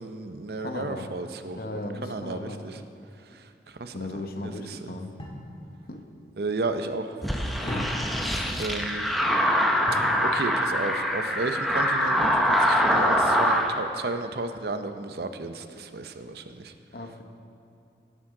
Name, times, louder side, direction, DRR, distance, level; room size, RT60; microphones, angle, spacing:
voice 1, 0.0-1.6 2.0-2.8 3.3-4.8 6.4-7.2 8.6-9.1 9.9-16.7, right 3 dB, 60° right, 8 dB, 0.6 m, -33 dB
voice 2, 0.6-1.1 1.5-2.6 3.9-5.1 5.9-6.0 7.6-7.9 16.9-17.2, left 2 dB, 55° left, 5 dB, 0.9 m, -36 dB
sound 1, 5.2-5.5 7.7-8.3 9.9-10.2 12.3-12.8, left 1 dB, 30° left, 1.6 m, -37 dB
sound 2, 7.2-13.7, equal, ahead, 0.6 m, -24 dB
16.5 x 9.1 x 3.8 m, 2.5 s
head